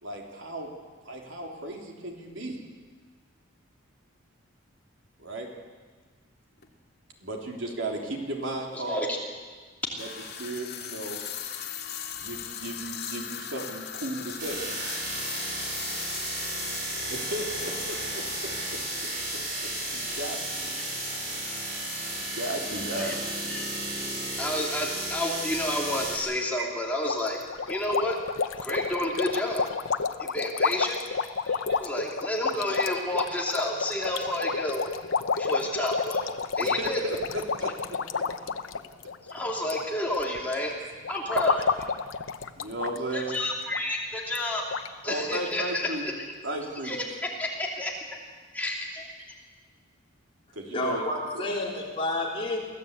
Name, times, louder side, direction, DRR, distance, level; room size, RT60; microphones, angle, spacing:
voice 1, 0.0-0.7 1.1-2.6 5.2-5.5 7.2-9.1 10.0-10.1 10.4-11.2 12.2-14.6 17.1-18.8 19.3-19.4 19.9-20.7 22.2-23.2 26.6-26.7 31.7-31.8 36.6-38.3 40.8-40.9 42.5-43.4 45.1-46.0 46.4-46.9 50.5-51.0, right 1 dB, 70° right, 0 dB, 3.5 m, -35 dB
sound 1, 6.6-6.7 7.7-7.8 9.8-23.9, left 9 dB, 50° left, 2.5 m, -40 dB
voice 2, 8.7-9.2 11.6-11.7 23.0-23.1 23.5-23.7 24.4-27.4 27.7-28.2 28.6-29.7 30.2-31.2 31.5-34.8 35.4-36.3 36.5-37.0 39.3-40.7 41.1-41.7 43.1-44.6 45.0-45.9 46.8-47.1 47.4-47.9 48.5-49.1, left 1 dB, 5° left, -2 dB, 2.9 m, -30 dB
sound 2, 14.4-26.2, right 1 dB, 50° right, 6.3 m, -33 dB
sound 3, 27.1-39.8 40.1-40.5 41.0-43.0 43.2-43.4 43.7-43.8 44.4-44.5 44.7-44.9, left 5 dB, 75° left, 0.9 m, -30 dB
voice 3, 50.7-52.6, left 2 dB, 25° left, -3 dB, 4.0 m, -30 dB
24.0 x 15.5 x 8.3 m, 1.5 s
head